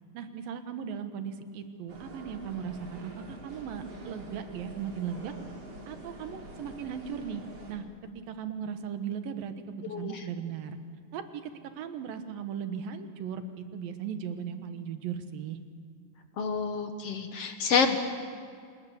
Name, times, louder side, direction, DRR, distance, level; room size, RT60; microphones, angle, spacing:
voice 1, 0.1-5.3 5.9-7.4 7.7-7.9 8.3-10.8 11.1-15.6, right 7 dB, 80° right, 8 dB, 3.0 m, -37 dB
sound 1, 1.9-7.7, right 2 dB, 45° right, 4.2 m, -46 dB
voice 2, 9.9-10.2 16.4-18.0, left 6 dB, 60° left, 7 dB, 1.7 m, -28 dB
28.0 x 19.5 x 7.1 m, 2.2 s
omnidirectional pair, 4.0 m